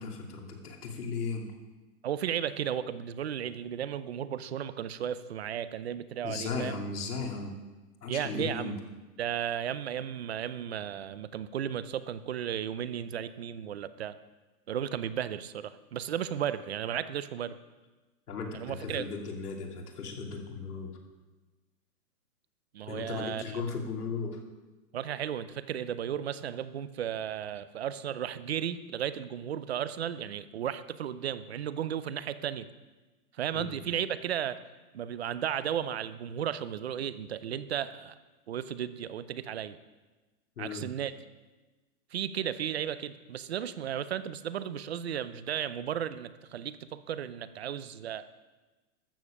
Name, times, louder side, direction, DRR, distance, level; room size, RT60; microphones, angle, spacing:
voice 1, 0.0-1.5 6.2-7.5 8.0-8.7 18.3-20.9 22.8-24.4 33.5-33.6 40.6-40.8, left 4 dB, 85° left, 1 dB, 2.8 m, -36 dB
voice 2, 2.0-6.7 8.1-8.7 9.2-14.1 14.7-17.6 18.5-19.1 22.7-23.6 24.9-32.7 33.4-34.6 34.9-38.1 38.5-39.8 40.6-41.1 42.1-48.3, right 9 dB, 45° right, 15 dB, 0.6 m, -34 dB
13.5 x 7.0 x 7.2 m, 1.2 s
hypercardioid pair, 175°, 45 cm